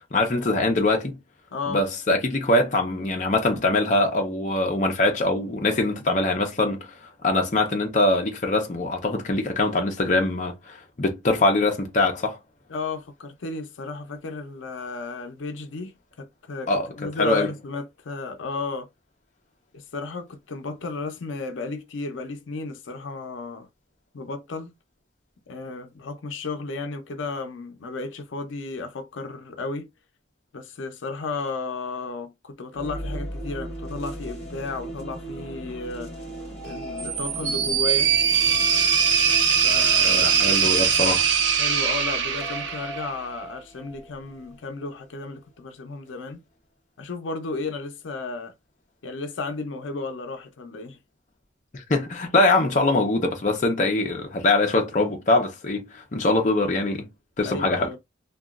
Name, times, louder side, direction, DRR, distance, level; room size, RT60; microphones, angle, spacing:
voice 1, 0.1-1.2 1.7-7.0 7.2-12.4 16.7-16.9 17.2-17.5 40.0-41.2 51.7-57.1 57.4-57.9, left 2 dB, 40° left, 0.6 m, -23 dB
voice 2, 1.5-1.8 12.7-18.9 19.7-23.7 24.1-24.7 25.5-29.9 30.5-36.1 36.6-38.1 39.6-40.5 41.5-46.4 47.0-48.5 49.0-51.0 57.4-58.0, left 3 dB, 90° left, 0.5 m, -33 dB
sound 1, 32.7-44.9, right 1 dB, 5° left, 1.3 m, -38 dB
sound 2, 37.0-43.2, right 7 dB, 80° right, 0.6 m, -21 dB
2.9 x 2.3 x 2.3 m
head